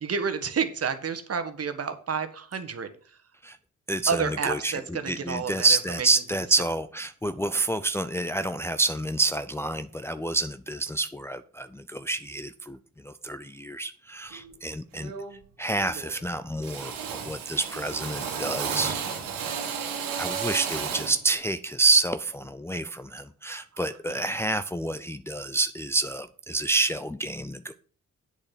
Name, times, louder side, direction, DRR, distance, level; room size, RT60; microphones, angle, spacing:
voice 1, 0.0-3.2 4.1-6.1 23.7-24.3, right 6 dB, 45° right, 9 dB, 1.5 m, -30 dB
voice 2, 3.9-4.2 4.5-4.8 5.1-12.8 13.0-15.1 15.6-19.0 20.2-27.7, right 3 dB, 10° left, 9 dB, 0.5 m, -28 dB
Drill, 14.3-14.5 14.9-15.5 15.7-16.3 16.6-21.2, right 7 dB, 85° right, 2.0 m, -33 dB
8.3 x 6.7 x 5.9 m, 0.43 s
supercardioid pair, 60°, 33 cm